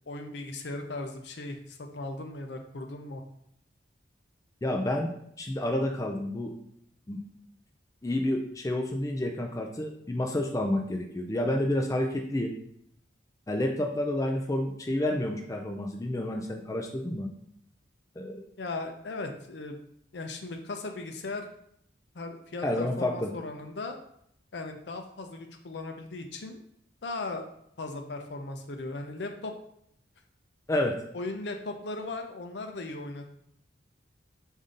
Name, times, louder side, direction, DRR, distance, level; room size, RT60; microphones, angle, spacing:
voice 1, 0.1-3.2 18.6-19.8 20.1-21.5 22.1-24.0 24.5-26.6 27.0-27.4 27.8-29.5 31.1-33.3, left 2 dB, 65° left, 5 dB, 0.6 m, -37 dB
voice 2, 4.6-6.5 7.1-7.2 8.0-12.5 13.5-17.3 18.2-18.4 22.6-23.3 30.7-30.9, left 1 dB, 20° left, 2 dB, 0.4 m, -29 dB
5.1 x 2.7 x 3.8 m, 0.71 s
head